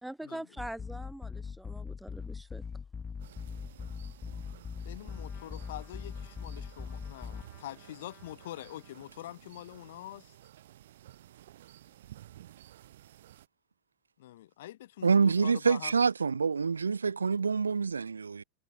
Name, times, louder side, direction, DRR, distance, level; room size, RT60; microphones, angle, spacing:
voice 1, 0.0-2.6, right 1 dB, 5° right, 0.5 m, -43 dB
sound 1, 0.6-7.4, left 6 dB, 15° left, 0.9 m, -41 dB
sound 2, 3.2-13.5, right 13 dB, 60° right, 5.9 m, -54 dB
voice 2, 4.8-10.3 14.2-16.0, left 14 dB, 55° left, 1.1 m, -45 dB
Trumpet, 5.0-9.6, left 19 dB, 40° left, 6.8 m, -62 dB
voice 3, 15.0-18.4, right 5 dB, 75° right, 0.4 m, -26 dB
figure-of-eight pair, 90°, 0 cm